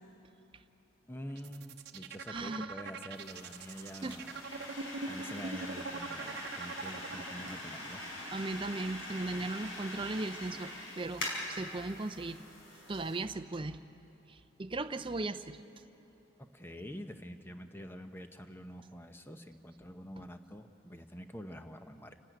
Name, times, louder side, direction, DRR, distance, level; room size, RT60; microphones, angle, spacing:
voice 1, 1.1-4.4 5.1-8.0 16.5-22.2, equal, 10° left, 7 dB, 0.8 m, -46 dB
sound 1, 1.3-7.6, right 4 dB, 55° right, 0.9 m, -42 dB
voice 2, 2.3-2.7 4.0-4.2 8.3-12.4 12.9-13.8 14.3-15.6, right 2 dB, 25° right, 11 dB, 0.5 m, -37 dB
sound 2, 3.1-13.2, left 1 dB, 85° left, 5.1 m, -43 dB
28.5 x 12.5 x 9.2 m, 3.0 s
head